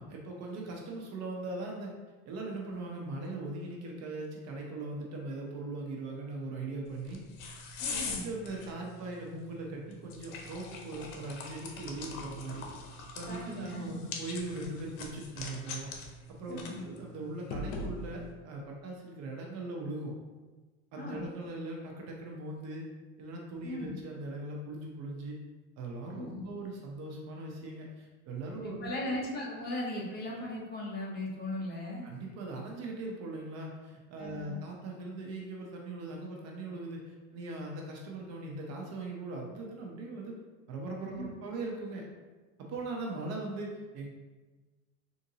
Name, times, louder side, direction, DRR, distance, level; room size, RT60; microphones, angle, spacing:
voice 1, 0.0-1.9 2.3-7.2 7.5-7.6 7.9-12.6 13.1-15.9 16.3-20.2 20.9-22.8 23.2-25.4 25.8-29.2 32.0-40.4 40.7-42.0 42.6-44.1, right 2 dB, 40° right, -1 dB, 0.6 m, -40 dB
sound 1, 6.9-18.3, left 3 dB, 70° left, 0.7 m, -43 dB
voice 2, 7.8-8.3 13.2-14.0 16.5-16.8 21.0-21.2 23.6-23.9 26.1-26.5 28.6-32.1 34.2-34.6 41.1-41.3, left 1 dB, 25° left, -4 dB, 0.7 m, -38 dB
3.7 x 2.6 x 2.7 m, 1.3 s
supercardioid pair, 130°, 42 cm